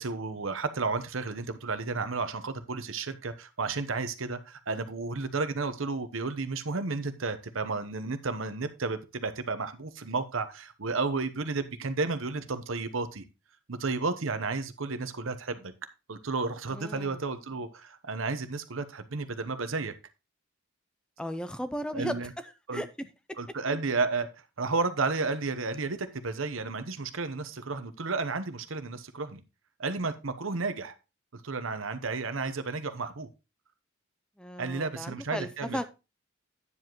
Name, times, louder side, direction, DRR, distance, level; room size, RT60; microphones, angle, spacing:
voice 1, 0.0-13.2 13.7-15.7 16.1-19.9 21.9-22.3 22.7-22.8 23.4-24.3 24.6-29.4 29.8-31.0 31.3-33.3 34.6-35.8, right 3 dB, 70° right, 0.9 m, -32 dB
voice 2, 16.7-17.2 21.2-22.2 22.4-22.9 34.4-35.8, equal, 5° left, 0.5 m, -35 dB
9.7 x 7.3 x 3.0 m
head